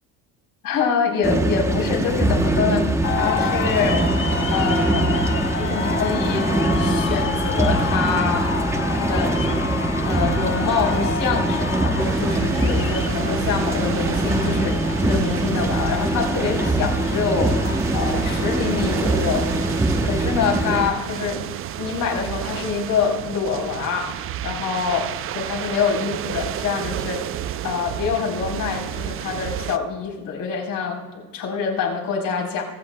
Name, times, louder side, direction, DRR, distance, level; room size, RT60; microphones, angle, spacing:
voice 1, 0.6-4.1 4.5-5.1 5.6-6.5 6.8-9.6 10.1-17.6 17.9-19.5 20.0-21.4 21.8-27.2 27.6-32.6, left 6 dB, 50° left, 0 dB, 3.8 m, -25 dB
sound 1, 1.2-20.9, right 2 dB, 5° right, 0.9 m, -23 dB
sound 2, 3.0-20.8, left 6 dB, 30° left, 1.3 m, -30 dB
sound 3, 12.0-29.8, right 11 dB, 35° right, 0.4 m, -31 dB
22.5 x 14.5 x 2.2 m, 1.2 s
cardioid pair, 115°, 43 cm